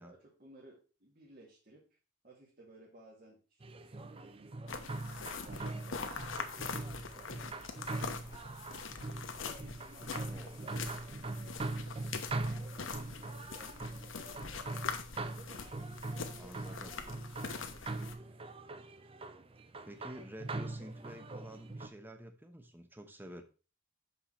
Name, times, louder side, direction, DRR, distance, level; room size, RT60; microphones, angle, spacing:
voice 1, 0.0-2.0 2.2-8.9 9.3-14.6 15.4-18.5, right 2 dB, 45° right, -4 dB, 1.8 m, -59 dB
sound 1, 3.6-21.9, right 2 dB, 30° right, 0.5 m, -42 dB
sound 2, 4.7-18.1, left 5 dB, 70° left, 0.9 m, -43 dB
voice 2, 10.2-10.6 16.4-16.9 19.8-23.4, right 1 dB, 10° right, 7 dB, 0.9 m, -49 dB
6.7 x 5.4 x 4.3 m, 0.35 s
head